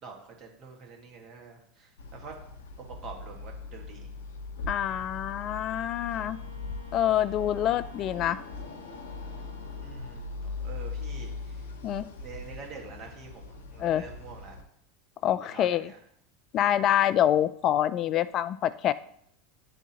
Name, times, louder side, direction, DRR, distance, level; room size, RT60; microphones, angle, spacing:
voice 1, 0.0-2.3 2.8-4.1 9.8-10.3 10.6-11.6 12.2-14.6 15.5-16.0, right 5 dB, 45° right, 1 dB, 1.7 m, -46 dB
sound 1, 2.0-14.6, left 4 dB, 75° left, 0.8 m, -40 dB
voice 2, 4.7-6.4 6.9-8.4 11.8-12.0 13.8-14.0 15.2-15.9 16.5-18.9, left 11 dB, 45° left, 16 dB, 0.3 m, -26 dB
Wind instrument woodwind instrument, 6.1-10.4, right 1 dB, 90° right, 1.1 m, -53 dB
9.8 x 3.6 x 2.9 m, 0.69 s
hypercardioid pair, 90°, 0 cm